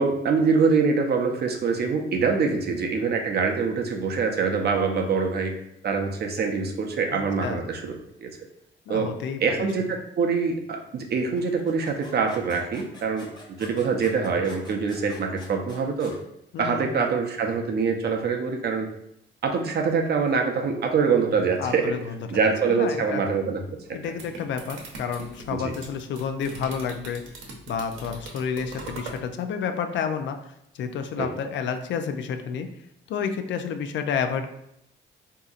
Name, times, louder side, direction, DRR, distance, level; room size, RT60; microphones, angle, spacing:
voice 1, 0.0-5.5 5.8-8.3 8.9-9.1 9.4-13.3 13.6-16.1 16.6-18.9 19.4-21.9 22.3-23.6 25.5-25.7 31.2-31.3, right 5 dB, 55° right, 3 dB, 0.6 m, -24 dB
voice 2, 7.1-7.6 8.9-9.7 16.5-17.0 21.6-23.2 23.9-27.2 27.7-30.4 30.7-32.7 33.1-34.5, left 6 dB, 70° left, 7 dB, 0.4 m, -30 dB
sound 1, 11.4-16.2, left 1 dB, 20° left, 1.0 m, -47 dB
sound 2, 23.8-29.2, right 2 dB, 85° right, 0.9 m, -41 dB
3.7 x 2.8 x 2.4 m, 0.77 s
cardioid pair, 90°, 20 cm